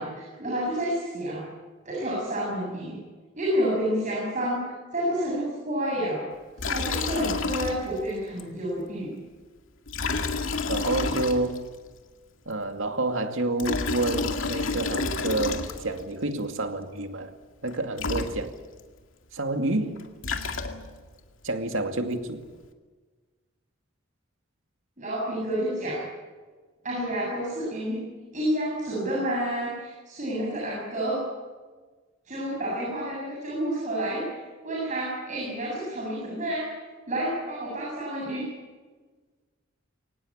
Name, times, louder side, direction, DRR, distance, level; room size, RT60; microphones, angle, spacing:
voice 1, 0.0-1.5 1.8-3.0 3.4-6.2 6.6-9.1 25.0-26.0 26.8-31.3 32.2-34.4 34.6-36.7 37.1-38.5, right 1 dB, 40° right, -3 dB, 7.8 m, -29 dB
Liquid, 6.6-8.1 8.4-8.5 9.9-11.8 13.4-16.1 17.7-17.8 18.0-18.8 20.0-21.1, left 3 dB, 80° left, 2.2 m, -29 dB
voice 2, 10.7-11.6 12.5-17.3 17.6-18.6 19.3-20.0 21.4-22.4, right 2 dB, 80° right, 6 dB, 2.3 m, -28 dB
23.5 x 19.0 x 8.8 m, 1.4 s
head